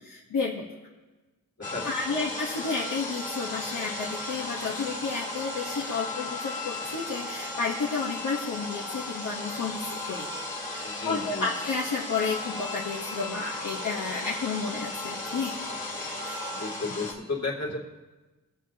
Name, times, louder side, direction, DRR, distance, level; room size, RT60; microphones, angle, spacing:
voice 1, 0.1-0.6 1.8-10.3 10.7-15.5 16.2-16.4, left 4 dB, 70° left, -2 dB, 1.1 m, -31 dB
voice 2, 1.6-2.2 10.8-11.5 16.5-17.8, left 3 dB, 50° left, -2 dB, 2.5 m, -33 dB
sound 1, 1.6-17.1, left 2 dB, 25° left, 1.9 m, -35 dB
22.5 x 7.6 x 2.8 m, 1.2 s
wide cardioid pair, 115°, 33 cm